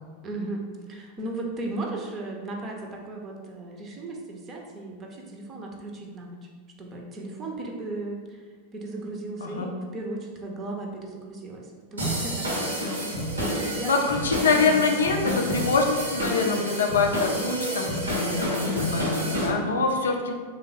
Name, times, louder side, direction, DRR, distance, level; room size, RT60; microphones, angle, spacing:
voice 1, 0.2-6.5 6.8-8.4 8.7-12.8 13.4-14.8, right 2 dB, 30° right, 1 dB, 0.6 m, -36 dB
sound 1, 12.0-19.5, equal, 75° right, 0.8 m, -29 dB
voice 2, 13.8-20.3, left 4 dB, 65° left, 2 dB, 0.4 m, -25 dB
3.3 x 2.2 x 4.0 m, 1.5 s
figure-of-eight pair, 90°, 0 cm